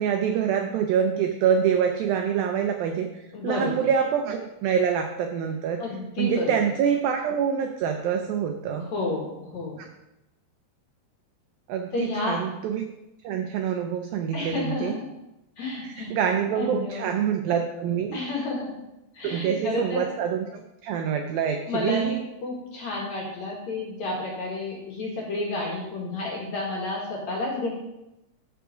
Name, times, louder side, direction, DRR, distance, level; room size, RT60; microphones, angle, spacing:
voice 1, 0.0-5.8 6.2-8.9 11.7-12.9 13.2-14.9 15.8-18.2 19.2-22.2, right 8 dB, 85° right, 5 dB, 2.0 m, -26 dB
voice 2, 3.3-3.9 5.8-6.5 8.8-9.8 11.9-12.4 14.3-15.1 15.6-16.1 16.6-17.1 18.1-18.8 19.1-20.1 21.7-27.7, left 2 dB, 55° left, -2 dB, 2.3 m, -31 dB
14.0 x 4.8 x 5.1 m, 0.91 s
omnidirectional pair, 5.0 m